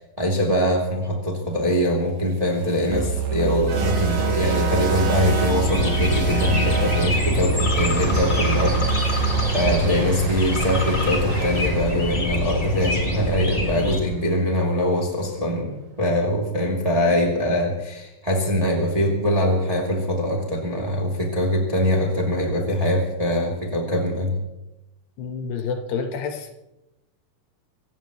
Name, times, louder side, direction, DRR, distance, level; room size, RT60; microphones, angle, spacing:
voice 1, 0.0-9.3 9.5-24.4, left 1 dB, 10° right, 2.1 m, -23 dB
sound 1, 2.4-14.6, right 3 dB, 70° right, 1.0 m, -33 dB
Musical instrument, 2.9-9.7, right 6 dB, 85° right, 4.0 m, -25 dB
sound 2, 5.6-14.0, left 2 dB, 30° left, 1.1 m, -25 dB
voice 2, 25.2-26.5, left 5 dB, 70° left, 3.2 m, -28 dB
26.0 x 16.0 x 3.2 m
omnidirectional pair, 5.2 m